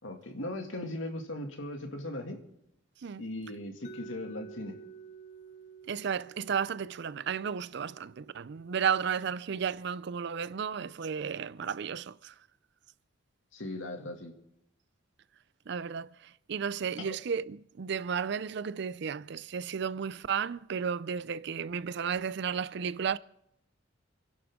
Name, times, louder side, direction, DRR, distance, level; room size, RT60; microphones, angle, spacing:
voice 1, 0.0-2.4 3.2-4.8 13.5-14.3 17.0-17.1, left 1 dB, 85° left, 2.3 m, -38 dB
Mallet percussion, 3.8-9.7, right 6 dB, 35° left, 0.8 m, -52 dB
voice 2, 5.9-12.3 15.7-23.2, right 7 dB, 60° right, 0.4 m, -33 dB
28.5 x 11.0 x 3.7 m
head